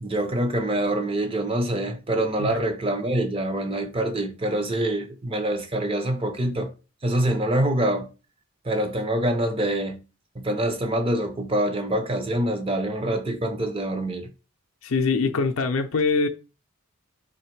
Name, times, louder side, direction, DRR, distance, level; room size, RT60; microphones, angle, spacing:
voice 1, 0.0-6.7 7.0-8.1 8.6-10.0 10.4-14.3, right 1 dB, 25° right, 0.6 m, -25 dB
voice 2, 14.8-16.3, left 4 dB, 65° left, 0.5 m, -23 dB
3.9 x 3.1 x 4.5 m
head